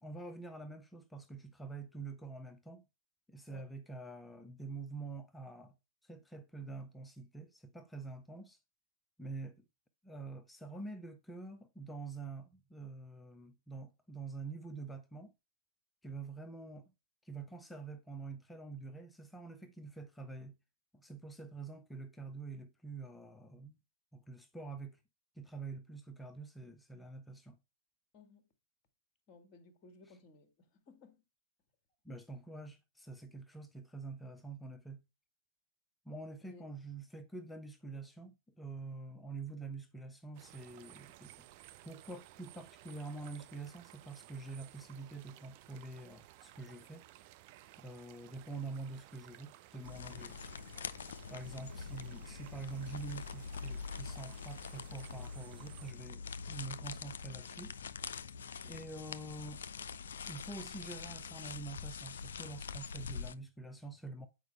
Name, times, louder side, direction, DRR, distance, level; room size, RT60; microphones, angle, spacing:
voice 1, 0.0-2.8 3.3-5.7 6.0-8.6 9.2-9.6 10.0-15.3 16.0-16.9 17.2-20.6 20.9-23.8 24.1-25.0 25.4-27.6 32.0-35.0 36.0-41.5 41.8-47.1 47.8-50.5 51.3-57.7 58.6-59.6 60.3-64.3, right 3 dB, 5° left, 0.7 m, -46 dB
voice 2, 28.1-28.5 29.3-31.2 36.4-36.7 51.5-51.8, left 4 dB, 30° left, 1.4 m, -59 dB
sound 1, 40.3-55.9, right 15 dB, 40° right, 0.4 m, -57 dB
sound 2, 49.8-63.4, left 5 dB, 65° left, 0.4 m, -44 dB
7.9 x 4.7 x 3.2 m
figure-of-eight pair, 110°, 0 cm